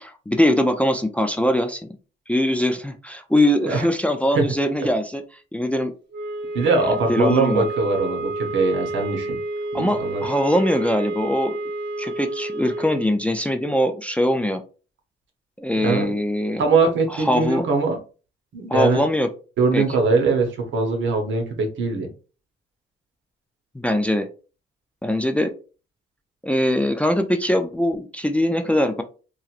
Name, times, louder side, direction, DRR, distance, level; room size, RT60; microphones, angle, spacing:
voice 1, 0.0-1.8 2.3-5.2 5.5-5.9 6.8-7.7 9.7-11.6 12.0-14.6 15.6-16.6 17.1-17.7 18.7-19.3 19.7-19.8 23.7-24.3 25.0-25.5 26.4-29.0, left 1 dB, 5° left, 7 dB, 0.3 m, -22 dB
sound 1, 6.1-13.1, right 2 dB, 60° right, 0.6 m, -30 dB
voice 2, 6.5-9.4 9.7-10.2 15.8-16.1 16.6-18.0 18.5-19.0 19.6-22.1, right 3 dB, 75° right, 3 dB, 0.9 m, -21 dB
3.0 x 2.5 x 2.4 m, 0.35 s
cardioid pair, 90°, 20 cm